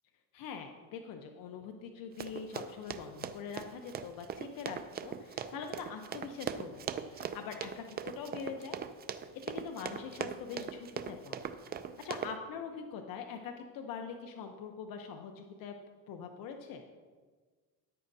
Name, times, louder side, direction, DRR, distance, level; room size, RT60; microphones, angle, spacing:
voice 1, 0.3-8.8 9.5-11.5 12.0-15.7 16.1-16.8, left 6 dB, 65° left, 5 dB, 0.9 m, -43 dB
Run, 2.2-12.3, right 8 dB, 25° right, 0.4 m, -40 dB
13.5 x 10.0 x 2.7 m, 1.5 s
cardioid pair, 135°, 36 cm